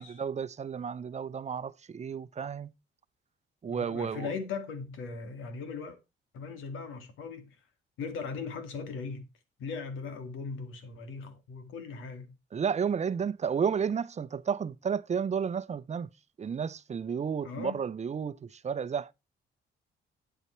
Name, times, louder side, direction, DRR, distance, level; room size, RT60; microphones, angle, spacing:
voice 1, 0.0-2.7 3.6-4.3 12.5-16.1 16.4-19.1, right 7 dB, 35° right, 0.7 m, -32 dB
voice 2, 3.7-6.0 6.3-7.6 8.0-9.3 9.6-12.4 17.4-17.8, left 5 dB, 85° left, 2.1 m, -39 dB
9.0 x 8.0 x 4.4 m
cardioid pair, 90°, 20 cm